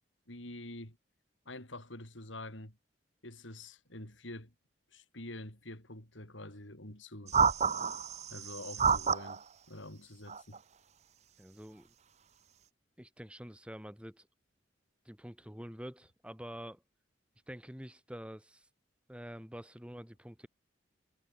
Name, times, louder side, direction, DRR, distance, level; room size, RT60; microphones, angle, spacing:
voice 1, 0.3-1.0 1.5-2.8 3.2-4.5 4.9-7.3 8.3-10.6, left 1 dB, 80° left, 6.5 m, -46 dB
sound 1, 7.3-9.4 10.3-10.6, right 6 dB, 35° right, 0.7 m, -29 dB
voice 2, 11.4-11.9 13.0-14.3 15.0-16.8 17.5-18.7 19.1-20.5, equal, 5° right, 2.7 m, -47 dB
head